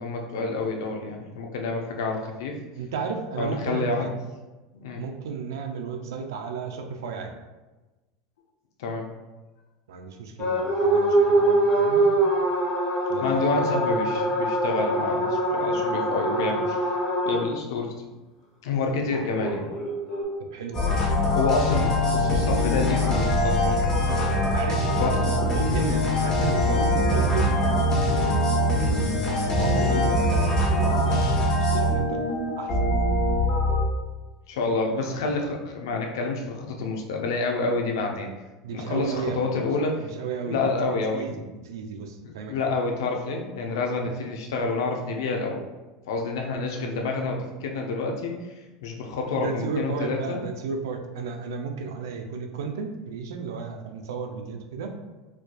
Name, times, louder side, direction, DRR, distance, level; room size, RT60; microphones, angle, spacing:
voice 1, 0.0-2.6 3.4-4.1 4.7-5.0 8.8-9.1 13.2-16.8 17.3-18.0 18.6-19.7 21.3-24.0 25.0-25.8 34.5-38.3 38.7-40.1 40.5-41.4 42.4-45.7 46.1-50.4, left 3 dB, 85° left, 1 dB, 0.6 m, -28 dB
voice 2, 2.8-4.1 5.0-7.3 9.9-12.1 13.1-13.7 20.4-21.0 24.1-24.9 25.5-27.5 28.0-31.2 31.6-32.2 32.6-32.9 38.6-39.7 40.0-40.6 40.9-42.6 44.0-44.1 49.4-55.0, right 5 dB, 90° right, 5 dB, 0.5 m, -34 dB
sound 1, 10.4-17.4 19.1-20.2, right 1 dB, 55° left, 1.4 m, -23 dB
sound 2, 20.7-33.8, left 1 dB, 30° left, 1.1 m, -23 dB
4.4 x 2.5 x 2.3 m, 1.1 s
supercardioid pair, 120°, 2 cm